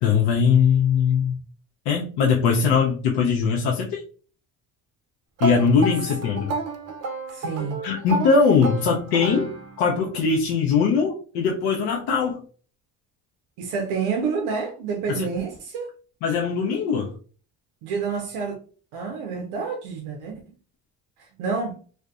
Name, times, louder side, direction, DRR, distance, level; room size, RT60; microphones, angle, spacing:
voice 1, 0.0-1.4 1.9-4.0 5.4-6.5 7.8-12.4 15.1-15.3 16.2-17.1, left 5 dB, 80° left, 0.6 m, -21 dB
sound 1, 5.4-10.0, right 3 dB, 40° right, 0.5 m, -31 dB
voice 2, 7.3-7.9 13.6-15.9 17.8-18.6 18.9-20.5 21.2-21.8, right 5 dB, 85° right, 0.5 m, -29 dB
2.6 x 2.1 x 2.3 m
supercardioid pair, 80°, 39 cm